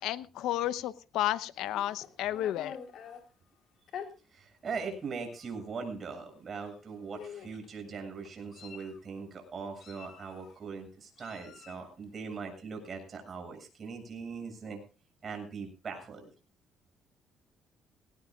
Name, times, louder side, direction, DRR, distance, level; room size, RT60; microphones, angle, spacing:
voice 1, 0.0-2.8, left 13 dB, 80° left, 14 dB, 0.9 m, -32 dB
Meow, 1.6-3.2 3.9-4.1 4.9-5.0 5.4-5.6 6.6-6.8 7.1-7.7 8.3-9.0 9.8-10.5 11.2-11.9, left 8 dB, 65° left, 3.8 m, -46 dB
voice 2, 4.3-14.8 15.2-16.3, right 5 dB, 40° right, 4 dB, 7.4 m, -40 dB
19.5 x 18.5 x 2.4 m, 0.35 s
cardioid pair, 110°, 0 cm